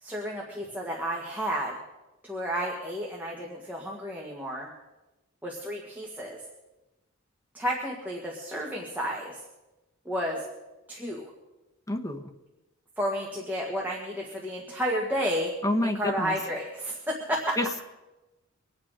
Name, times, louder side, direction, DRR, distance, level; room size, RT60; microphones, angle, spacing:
voice 1, 0.0-1.8 2.2-4.7 5.4-6.4 7.5-9.4 10.1-10.4 10.9-11.3 13.0-15.5 15.8-17.6, equal, 10° right, -3 dB, 1.8 m, -31 dB
voice 2, 11.9-12.3 15.6-16.3 17.6-17.8, left 1 dB, 15° left, 3 dB, 1.1 m, -28 dB
24.5 x 8.9 x 5.1 m, 1.0 s
head